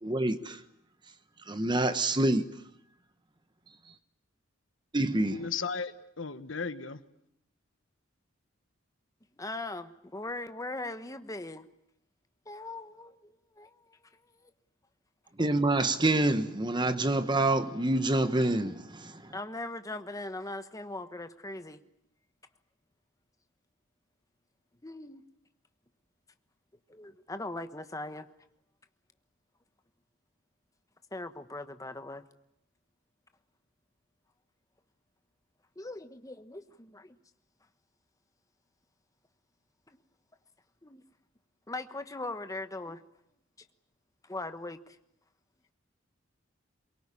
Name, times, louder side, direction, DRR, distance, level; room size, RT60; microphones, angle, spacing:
voice 1, 0.0-0.6 1.5-2.5 4.9-5.5 15.4-19.3, right 2 dB, 20° right, 1.2 m, -27 dB
voice 2, 5.3-7.0, left 5 dB, 65° left, 1.4 m, -35 dB
voice 3, 9.4-11.6 12.5-14.0 14.3-14.5 19.3-21.8 24.8-25.2 26.9-28.3 31.1-32.2 35.8-37.2 40.8-41.0 41.7-43.0 44.2-45.0, left 2 dB, 15° left, 1.2 m, -40 dB
23.5 x 23.0 x 9.8 m
head